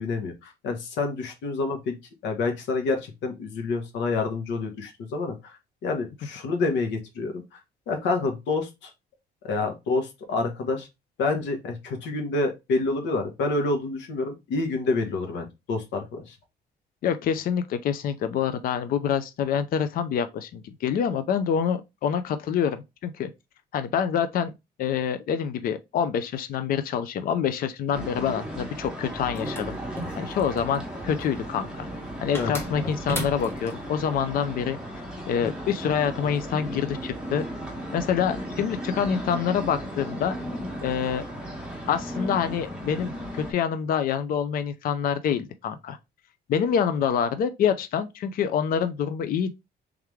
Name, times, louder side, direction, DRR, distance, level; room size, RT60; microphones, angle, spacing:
voice 1, 0.0-1.9 2.2-5.6 5.8-7.4 7.9-8.9 9.4-10.9 11.2-16.3 32.3-32.5, left 3 dB, 85° left, 1.2 m, -28 dB
voice 2, 17.0-23.3 23.7-24.5 24.8-29.8 30.2-31.9 32.2-34.8 35.3-37.4 37.9-40.4 40.8-41.2 41.9-46.0 46.5-49.5, left 8 dB, 55° left, 0.5 m, -26 dB
sound 1, 27.9-43.5, equal, 5° right, 1.3 m, -35 dB
sound 2, 29.3-30.8 32.4-33.8, equal, 15° left, 1.0 m, -34 dB
3.5 x 3.2 x 3.5 m
cardioid pair, 150°, 18 cm